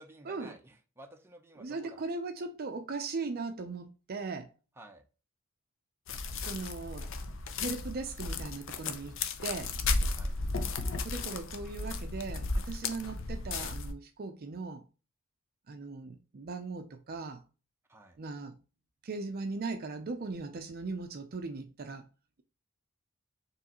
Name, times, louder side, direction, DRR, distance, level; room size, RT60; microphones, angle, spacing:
voice 1, 0.0-2.0 4.8-5.0 10.1-10.4 17.9-18.2, right 1 dB, 10° right, 0.7 m, -53 dB
voice 2, 1.6-4.5 6.4-7.1 7.6-9.7 11.0-14.8 15.7-17.4 18.2-18.6 19.0-22.0, right 3 dB, 45° right, 0.5 m, -38 dB
sound 1, 6.1-13.9, left 3 dB, 65° left, 0.6 m, -34 dB
4.7 x 3.2 x 2.9 m
head